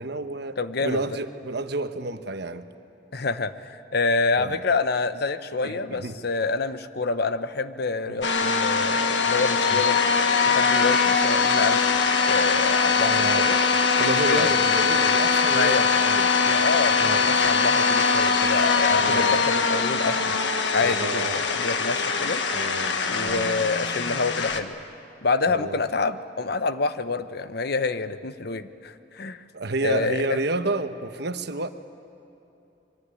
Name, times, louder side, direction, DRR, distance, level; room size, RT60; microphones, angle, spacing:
voice 1, 0.0-2.7 4.4-4.6 5.6-6.2 8.1-8.2 9.7-9.8 13.0-13.5 14.0-16.3 17.0-17.3 18.9-19.4 20.8-21.4 22.5-23.6 25.5-25.8 29.5-31.7, right 2 dB, 65° right, 9 dB, 1.2 m, -30 dB
voice 2, 0.6-1.0 3.1-10.0 10.4-12.0 12.3-13.6 14.3-14.7 15.5-15.8 16.4-20.4 20.7-22.4 23.1-24.8 25.2-29.4 29.8-30.4, left 3 dB, 60° left, 11 dB, 1.0 m, -27 dB
sound 1, 8.2-24.6, left 5 dB, 80° left, 1.6 m, -22 dB
25.0 x 23.0 x 9.8 m, 2.8 s
head